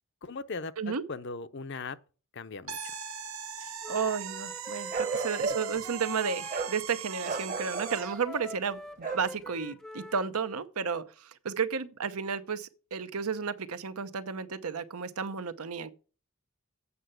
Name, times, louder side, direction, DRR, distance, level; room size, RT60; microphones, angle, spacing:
voice 1, 0.2-2.0 2.3-3.0 5.1-5.2, left 4 dB, 50° left, 0.6 m, -39 dB
sound 1, 2.7-8.2, right 8 dB, 70° right, 1.2 m, -40 dB
voice 2, 3.6-15.9, right 6 dB, 85° right, 0.8 m, -33 dB
Wind instrument woodwind instrument, 3.8-6.8 7.1-10.3, left 1 dB, ahead, 0.4 m, -45 dB
Bark, 4.9-5.8 6.5-6.8 7.2-8.0 9.0-9.3, right 4 dB, 35° right, 1.0 m, -33 dB
8.2 x 5.6 x 7.8 m
head